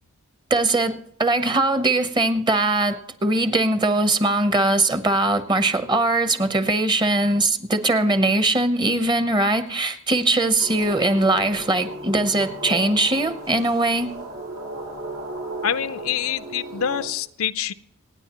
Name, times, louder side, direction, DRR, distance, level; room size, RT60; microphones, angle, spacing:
voice 1, 0.5-14.1, right 2 dB, 20° right, 0.8 m, -21 dB
sound 1, 10.6-17.1, right 1 dB, 85° right, 4.1 m, -35 dB
voice 2, 15.6-17.7, left 9 dB, 75° left, 0.5 m, -26 dB
26.5 x 9.7 x 3.0 m
head